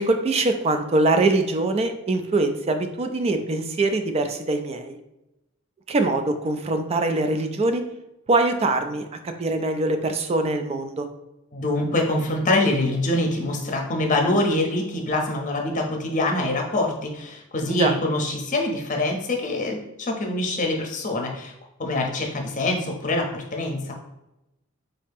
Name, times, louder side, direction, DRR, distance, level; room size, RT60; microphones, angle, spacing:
voice 1, 0.0-5.0 5.9-7.8 8.3-11.1 17.7-17.9, right 2 dB, 30° right, 7 dB, 0.3 m, -23 dB
voice 2, 11.5-21.5 21.8-23.9, left 2 dB, 35° left, 1 dB, 0.7 m, -25 dB
4.0 x 2.8 x 3.5 m, 0.92 s
head